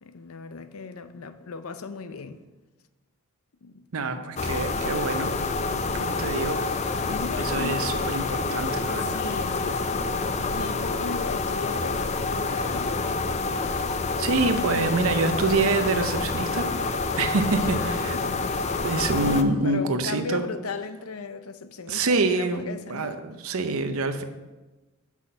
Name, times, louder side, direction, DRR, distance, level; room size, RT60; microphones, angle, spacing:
voice 1, 0.0-2.4 3.6-3.8 4.1-4.2 5.6-6.2 7.0-7.8 9.0-10.0 10.5-13.1 17.6-18.6 19.6-23.2, left 4 dB, 80° left, 0.6 m, -37 dB
voice 2, 3.9-5.3 6.0-6.6 7.4-9.2 14.2-16.7 17.2-18.2 18.8-20.4 21.9-22.6 22.9-24.2, right 3 dB, 80° right, 0.7 m, -26 dB
sound 1, 4.4-19.4, left 3 dB, 30° left, 0.4 m, -27 dB
6.3 x 5.9 x 5.5 m
head